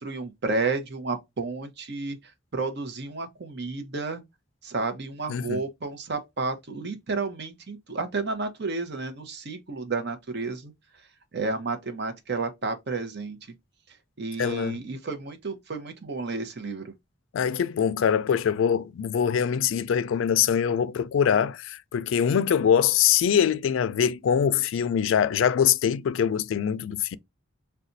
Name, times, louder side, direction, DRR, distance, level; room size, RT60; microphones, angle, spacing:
voice 1, 0.0-4.2 4.6-13.5 13.9-16.9, right 3 dB, 60° right, 0.7 m, -32 dB
voice 2, 5.3-5.6 14.4-14.8 17.3-27.2, left 8 dB, 85° left, 0.3 m, -23 dB
4.1 x 2.2 x 2.6 m
head